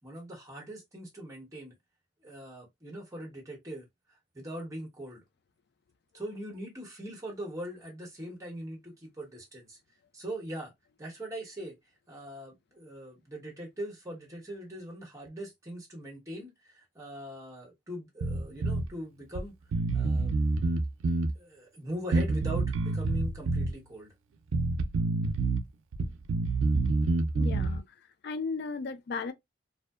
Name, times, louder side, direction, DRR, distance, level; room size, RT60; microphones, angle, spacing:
voice 1, 0.0-1.7 2.2-5.2 6.1-9.8 10.1-10.7 11.0-11.8 12.1-19.6 19.9-20.3 21.3-24.1, right 1 dB, 15° right, 0.9 m, -41 dB
Bass guitar, 18.2-18.9 19.4-19.5 19.7-21.3 22.1-23.7 24.5-25.6 25.9-27.8, right 3 dB, 90° right, 0.4 m, -27 dB
voice 2, 27.3-27.8 28.2-29.3, left 4 dB, 55° left, 0.3 m, -35 dB
2.7 x 2.0 x 2.2 m
head